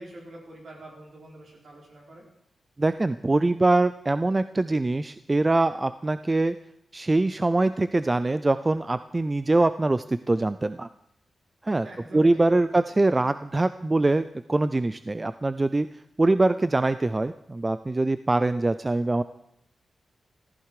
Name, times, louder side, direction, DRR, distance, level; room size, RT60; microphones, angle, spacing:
voice 1, 0.0-2.2 11.8-12.7, right 1 dB, 65° right, -1 dB, 4.9 m, -44 dB
voice 2, 2.8-6.6 6.9-10.9 11.6-11.9 12.1-15.9 16.2-19.2, right 2 dB, 25° right, 13 dB, 0.4 m, -23 dB
14.5 x 14.0 x 4.9 m, 0.75 s
wide cardioid pair, 110°, 0 cm